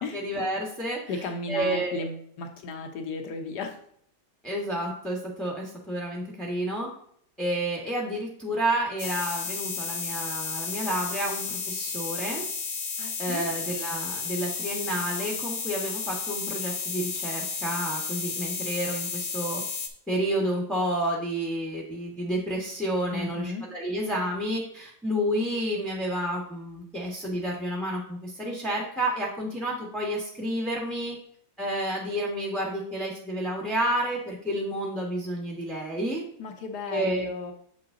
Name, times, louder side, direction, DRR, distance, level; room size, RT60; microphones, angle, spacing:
voice 1, 0.1-2.1 4.4-6.9 7.4-12.4 13.2-19.6 20.1-31.2 31.6-36.2 36.9-37.3, right 1 dB, ahead, -2 dB, 0.7 m, -30 dB
voice 2, 1.1-3.8 13.0-13.5 23.1-23.7 36.4-37.5, left 3 dB, 65° left, 5 dB, 1.3 m, -34 dB
sound 1, 9.0-19.9, left 5 dB, 45° left, 1.0 m, -33 dB
7.4 x 5.8 x 3.7 m, 0.64 s
omnidirectional pair, 2.1 m